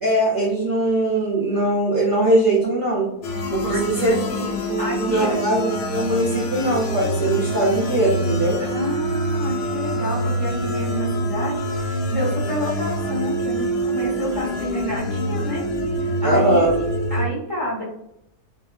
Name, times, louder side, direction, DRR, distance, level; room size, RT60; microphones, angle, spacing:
voice 1, 0.0-3.1 3.5-8.6 16.2-16.7, right 1 dB, 70° right, -5 dB, 0.5 m, -21 dB
sound 1, 3.2-17.2, equal, 85° left, 0.5 m, -25 dB
voice 2, 3.6-5.4 8.6-15.6 15.9-16.8 17.1-17.8, equal, 30° right, -7 dB, 0.6 m, -29 dB
2.6 x 2.3 x 2.2 m, 0.82 s
omnidirectional pair, 1.7 m